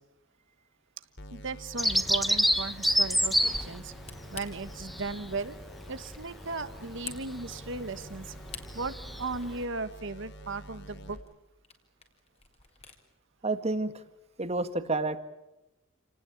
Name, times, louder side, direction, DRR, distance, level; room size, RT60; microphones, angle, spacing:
sound 1, 1.2-11.2, equal, 60° left, 3.3 m, -49 dB
voice 1, 1.3-3.9 4.3-5.6 5.9-8.3 8.7-11.2, right 3 dB, 65° right, 11 dB, 1.4 m, -36 dB
Bird vocalization bird call bird song, 1.8-9.6, equal, ahead, 1.1 m, -30 dB
Camera, 8.4-13.0, left 5 dB, 30° left, 3.7 m, -52 dB
voice 2, 13.4-13.9 14.4-15.2, right 2 dB, 30° right, 10 dB, 1.7 m, -29 dB
29.0 x 19.0 x 8.7 m, 0.95 s
head